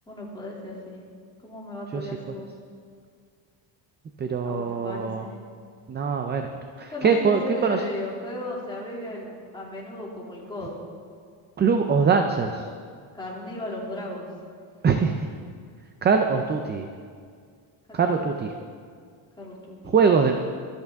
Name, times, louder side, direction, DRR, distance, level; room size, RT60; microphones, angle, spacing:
voice 1, 0.1-1.0 1.4-2.5 4.4-5.4 6.9-10.8 13.1-14.3 17.9-18.3 19.4-19.9, left 1 dB, 10° left, -5 dB, 2.6 m, -36 dB
voice 2, 4.2-5.3 5.9-6.5 6.8-7.8 11.6-12.7 14.8-15.1 16.0-16.9 17.9-18.5 19.9-20.3, right 5 dB, 25° right, 5 dB, 0.4 m, -22 dB
24.0 x 8.2 x 3.5 m, 2.1 s
cardioid pair, 160°, 49 cm